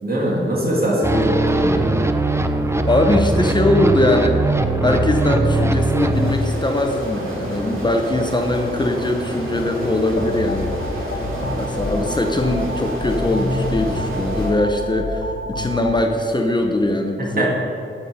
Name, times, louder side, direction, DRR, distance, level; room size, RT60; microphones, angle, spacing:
voice 1, 0.0-1.2 1.5-1.9 17.2-17.5, right 1 dB, 50° right, -4 dB, 2.8 m, -22 dB
sound 1, 1.0-6.3, right 2 dB, 15° right, 0.5 m, -20 dB
voice 2, 1.1-1.5 2.9-17.5, left 1 dB, 20° left, 3 dB, 0.7 m, -21 dB
sound 2, 6.1-14.5, right 1 dB, 80° right, 2.5 m, -29 dB
sound 3, 10.1-15.9, left 2 dB, 75° left, 1.3 m, -27 dB
12.5 x 6.5 x 5.4 m, 2.7 s
wide cardioid pair, 130°, 21 cm